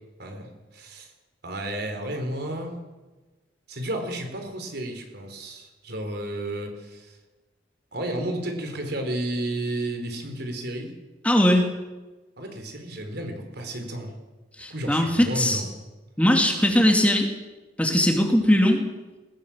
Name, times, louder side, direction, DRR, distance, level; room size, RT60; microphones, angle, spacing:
voice 1, 0.2-1.1 1.4-2.8 3.7-7.2 7.9-10.9 12.4-14.1 14.7-15.7, right 1 dB, 60° right, 5 dB, 4.5 m, -32 dB
voice 2, 11.2-11.6 14.6-15.6 16.2-17.3 17.8-18.9, left 1 dB, 5° left, 2 dB, 2.5 m, -20 dB
20.5 x 20.0 x 7.4 m, 1.2 s
head